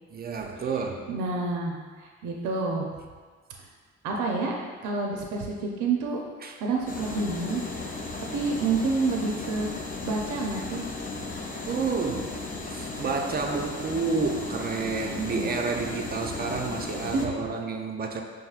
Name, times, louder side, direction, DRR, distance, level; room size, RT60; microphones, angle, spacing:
voice 1, 0.1-1.1 6.4-6.6 11.6-12.4 12.7-18.2, right 4 dB, 30° right, 2 dB, 0.4 m, -30 dB
voice 2, 1.1-2.9 4.0-4.5 4.8-6.2 6.6-7.6 8.3-9.7 10.0-10.8 15.1-15.5 17.1-17.3, right 3 dB, 80° right, -1 dB, 0.6 m, -28 dB
sound 1, 6.9-17.3, left 3 dB, 30° left, 0.6 m, -36 dB
5.6 x 2.6 x 2.4 m, 1.5 s
cardioid pair, 90°, 30 cm